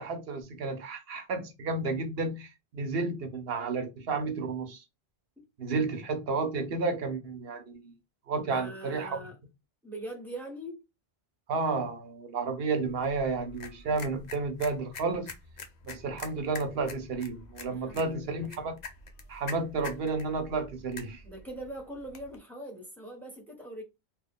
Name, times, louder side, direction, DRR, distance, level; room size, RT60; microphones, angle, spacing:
voice 1, 0.0-4.8 5.6-7.9 8.3-9.3 11.5-15.3 15.8-18.8 19.3-21.2, right 4 dB, 70° right, 0.9 m, -32 dB
voice 2, 8.4-9.4 9.8-10.8 17.7-18.6 21.2-23.8, right 1 dB, ahead, 1.0 m, -42 dB
sound 1, 12.9-22.4, left 4 dB, 50° left, 0.6 m, -46 dB
3.0 x 2.3 x 3.5 m
omnidirectional pair, 1.1 m